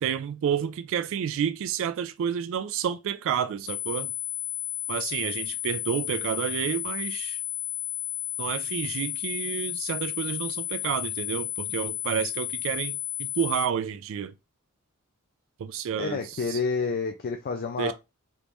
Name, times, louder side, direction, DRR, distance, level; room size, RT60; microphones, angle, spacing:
voice 1, 0.0-4.1 4.9-7.4 8.4-14.3 15.6-16.6 17.8-17.9, right 8 dB, 65° right, 0.3 m, -30 dB
sound 1, 3.7-13.7, left 14 dB, 75° left, 1.4 m, -33 dB
voice 2, 16.0-17.9, left 4 dB, 45° left, 0.4 m, -29 dB
3.5 x 3.0 x 2.5 m
head